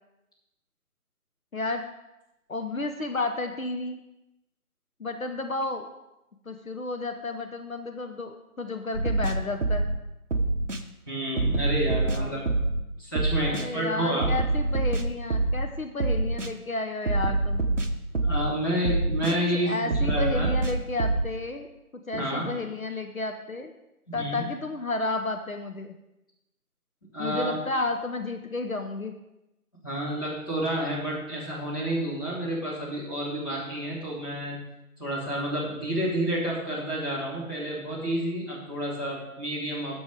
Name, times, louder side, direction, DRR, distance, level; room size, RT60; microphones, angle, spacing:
voice 1, 1.5-1.8 2.5-4.0 5.0-5.9 6.5-9.9 12.1-12.4 13.4-17.8 19.5-23.7 24.1-26.0 27.2-29.1, left 2 dB, 65° left, 5 dB, 0.9 m, -32 dB
sound 1, 8.9-10.0 10.3-10.8 11.4-12.8 13.2-13.7 14.2-15.7 16.0-16.5 17.1-18.5 18.8-19.4 19.9-21.3, right 2 dB, 55° right, 0.9 m, -26 dB
voice 2, 11.1-12.4 13.0-14.3 18.2-20.5 22.1-22.5 24.1-24.5 27.1-27.5 29.8-34.5 35.0-40.0, right 1 dB, 15° left, -8 dB, 1.6 m, -30 dB
9.3 x 7.4 x 4.8 m, 0.93 s
figure-of-eight pair, 160°, 45 cm